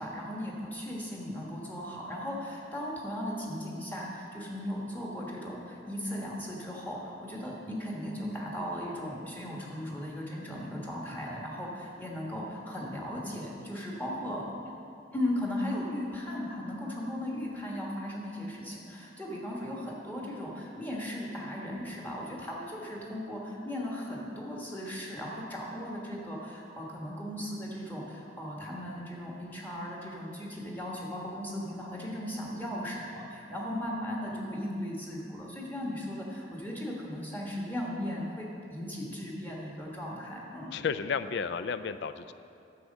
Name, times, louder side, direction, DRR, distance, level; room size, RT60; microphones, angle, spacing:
voice 1, 0.0-14.7 15.1-40.7, left 1 dB, 10° left, -3 dB, 1.3 m, -37 dB
voice 2, 40.7-42.3, left 6 dB, 65° left, 12 dB, 0.3 m, -32 dB
9.3 x 7.2 x 5.4 m, 2.7 s
head